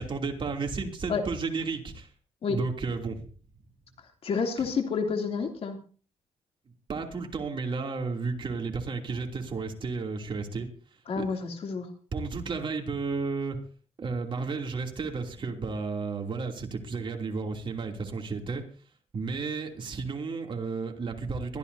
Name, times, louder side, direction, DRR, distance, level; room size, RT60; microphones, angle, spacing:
voice 1, 0.0-2.1 2.5-3.2 6.9-10.7 11.2-11.3 12.1-13.6 14.0-18.6 19.1-21.6, right 4 dB, 45° right, 3 dB, 2.9 m, -32 dB
voice 2, 4.2-5.8 11.1-11.9, left 5 dB, 60° left, 3 dB, 2.9 m, -29 dB
22.0 x 14.0 x 2.7 m, 0.39 s
cardioid pair, 95°, 11 cm